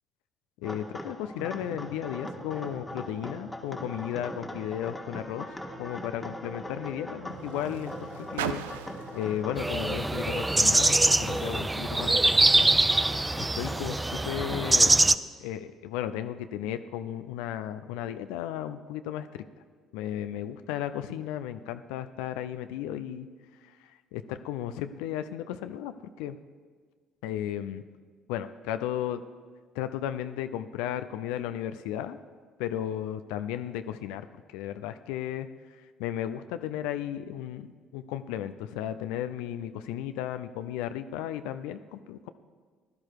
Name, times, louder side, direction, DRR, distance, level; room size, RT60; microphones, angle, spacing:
voice 1, 0.6-8.6 9.1-12.7 13.4-14.9 15.4-19.4 19.9-23.3 23.6-25.9 26.2-26.4 27.2-27.8 28.3-29.2 29.7-32.2 32.6-42.3, left 11 dB, 80° left, 10 dB, 0.5 m, -35 dB
sound 1, 0.6-14.9, left 1 dB, 15° left, 1.7 m, -40 dB
Car, 4.8-11.4 12.2-12.3, right 11 dB, 85° right, 0.4 m, -42 dB
sound 2, 9.6-15.1, right 2 dB, 15° right, 0.5 m, -23 dB
16.0 x 11.5 x 4.7 m, 1.5 s
hypercardioid pair, 55°, 0 cm